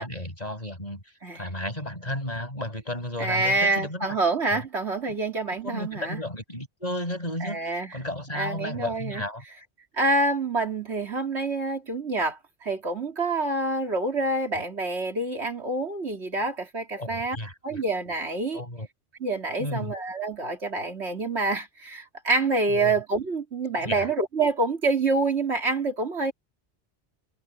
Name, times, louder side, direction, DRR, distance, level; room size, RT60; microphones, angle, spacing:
voice 1, 0.0-1.0 1.3-4.2 4.5-4.6 5.1-5.2 5.6-9.4 14.5-14.6 17.0-17.8 18.5-18.9 19.6-19.9 22.7-23.0 23.8-24.1, left 1 dB, 35° left, 7.4 m, -33 dB
voice 2, 3.2-6.2 7.4-7.9 8.3-9.2 9.9-17.4 17.6-18.6 19.2-26.3, right 2 dB, 75° right, 3.3 m, -27 dB
omnidirectional pair, 1.1 m